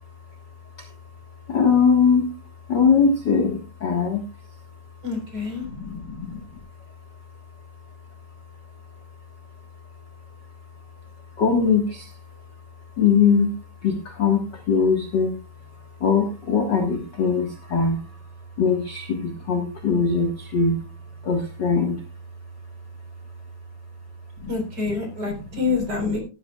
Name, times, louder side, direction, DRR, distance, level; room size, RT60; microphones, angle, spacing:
voice 1, 1.5-2.3 2.7-4.2 5.6-6.6 11.4-12.2 13.0-13.5 13.8-15.4 16.0-20.8 21.2-22.0 24.4-24.5 25.3-25.4 25.7-26.2, left 5 dB, 45° left, 3 dB, 1.7 m, -22 dB
voice 2, 5.0-5.6 24.5-26.2, left 4 dB, 30° right, 3 dB, 4.3 m, -26 dB
16.5 x 11.5 x 2.3 m, 0.31 s
omnidirectional pair, 3.7 m